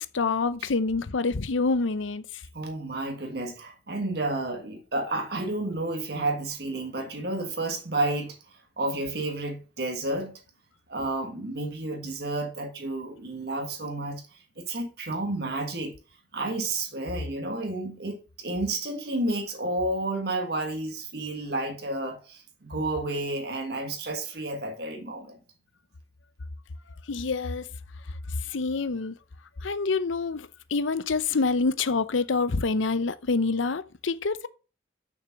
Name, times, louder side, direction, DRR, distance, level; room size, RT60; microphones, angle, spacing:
voice 1, 0.0-2.3 27.1-27.7 28.5-29.1 29.6-34.5, left 4 dB, 90° left, 0.7 m, -27 dB
voice 2, 2.5-8.4 8.8-10.4 10.9-14.2 14.6-15.9 16.3-25.4, right 2 dB, 55° right, 1.6 m, -31 dB
6.9 x 6.4 x 5.7 m
head